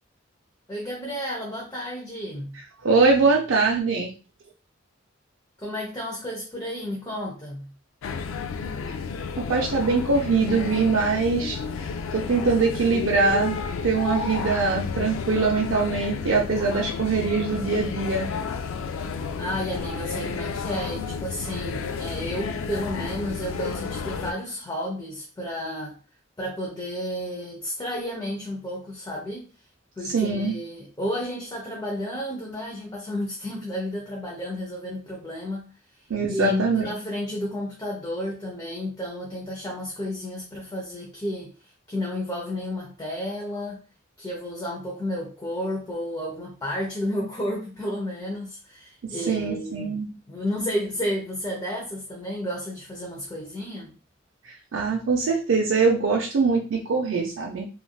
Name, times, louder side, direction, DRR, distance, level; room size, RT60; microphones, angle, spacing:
voice 1, 0.7-2.6 5.6-7.7 19.4-26.0 26.4-29.5 30.0-35.7 36.3-41.5 41.9-43.8 44.2-50.0 50.3-53.9, left 1 dB, 20° left, -2 dB, 0.6 m, -32 dB
voice 2, 2.8-4.1 9.4-11.6 12.1-18.3 30.0-30.5 36.1-36.9 49.0-50.1 54.4-57.7, right 4 dB, 75° right, 0 dB, 0.5 m, -23 dB
sound 1, 8.0-24.3, left 5 dB, 80° left, 0.3 m, -31 dB
3.2 x 2.4 x 2.3 m, 0.34 s
head